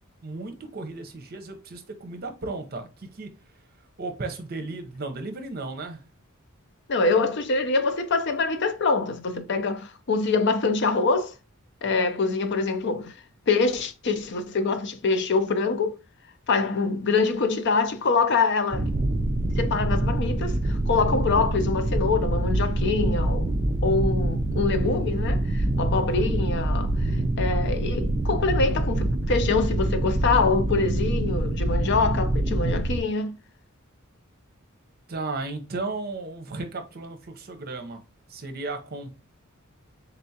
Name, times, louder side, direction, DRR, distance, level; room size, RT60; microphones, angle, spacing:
voice 1, 0.2-3.3 4.0-6.0 35.1-38.0 38.3-39.1, right 3 dB, 45° right, 0.8 m, -35 dB
voice 2, 6.9-11.3 11.8-13.1 13.5-16.0 16.5-18.9 19.6-23.5 23.8-27.1 27.4-33.4, left 4 dB, 55° left, 0.5 m, -25 dB
sound 1, 18.7-33.0, right 1 dB, 30° right, 0.4 m, -25 dB
4.0 x 3.4 x 2.8 m
head